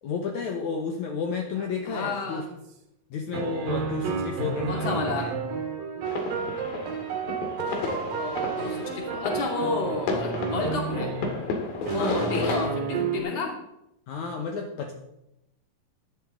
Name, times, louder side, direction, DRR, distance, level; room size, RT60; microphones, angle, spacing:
voice 1, 0.0-2.5 3.1-5.3 11.9-12.6 14.1-14.9, left 5 dB, 65° left, 2 dB, 2.3 m, -31 dB
sound 1, 1.6-2.6 3.3-11.5 11.9-13.2, right 6 dB, 80° right, 3.1 m, -31 dB
voice 2, 1.9-2.5 4.7-5.3 8.2-11.1 11.9-13.5, left 3 dB, 35° left, 0 dB, 2.9 m, -31 dB
sound 2, 6.0-12.7, left 4 dB, 85° left, 3.7 m, -33 dB
16.5 x 11.0 x 3.8 m, 0.84 s
omnidirectional pair, 4.0 m